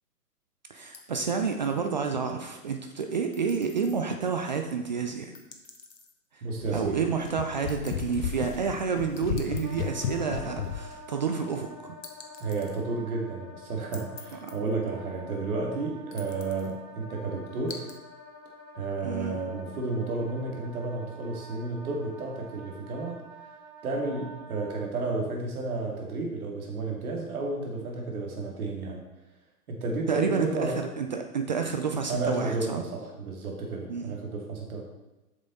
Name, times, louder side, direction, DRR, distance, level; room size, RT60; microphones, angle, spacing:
voice 1, 0.7-5.3 6.7-12.0 14.3-14.5 19.0-19.4 30.1-32.8 33.9-34.1, right 5 dB, 30° right, 5 dB, 0.4 m, -29 dB
sound 1, 0.9-1.9 3.3-4.0 5.3-6.1 7.7-8.4 9.2-9.9 12.0-12.8 13.9-14.8 16.1-16.7 17.7-18.0, left 4 dB, 85° left, 1.3 m, -48 dB
voice 2, 6.4-7.1 12.4-17.9 18.7-23.2 23.8-29.0 29.7-30.8 32.1-34.8, right 3 dB, 60° right, 0 dB, 2.2 m, -32 dB
sound 2, 6.6-10.9, left 8 dB, 70° left, 0.8 m, -34 dB
Wind instrument woodwind instrument, 9.6-24.9, right 1 dB, 80° right, 1.9 m, -48 dB
7.9 x 6.2 x 4.0 m, 1.0 s
figure-of-eight pair, 120°, 49 cm